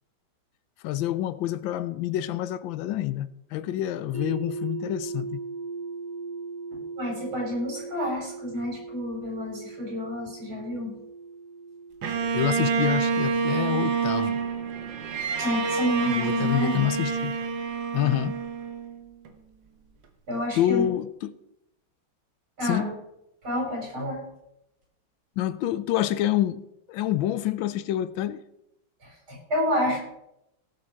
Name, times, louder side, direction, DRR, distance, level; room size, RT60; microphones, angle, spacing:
voice 1, 0.8-5.4 12.3-14.4 16.1-17.4 17.9-18.4 20.6-21.3 22.6-22.9 25.4-26.6 26.9-28.4, left 12 dB, 80° left, 1.3 m, -27 dB
sound 1, 4.1-16.1, right 4 dB, 25° right, 1.5 m, -39 dB
voice 2, 6.7-10.9 15.4-16.8 20.3-20.9 22.6-22.9 23.4-24.3 29.0-30.0, left 1 dB, 85° right, 4.9 m, -29 dB
Bowed string instrument, 12.0-19.3, right 5 dB, 65° right, 1.8 m, -27 dB
17.5 x 6.9 x 4.5 m
omnidirectional pair, 2.2 m